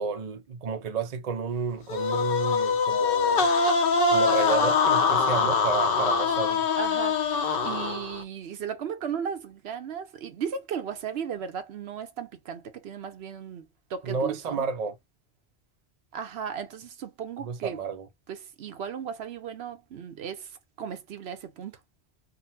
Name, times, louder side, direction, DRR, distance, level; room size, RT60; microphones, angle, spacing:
voice 1, 0.0-3.5 4.1-6.7 14.0-15.0 17.4-18.1, right 5 dB, 45° right, 0.6 m, -31 dB
sound 1, 1.9-8.2, left 4 dB, 60° left, 0.8 m, -23 dB
voice 2, 6.8-14.7 16.1-17.8 18.3-21.8, right 7 dB, 70° right, 0.9 m, -36 dB
3.7 x 2.0 x 2.7 m
omnidirectional pair, 1.1 m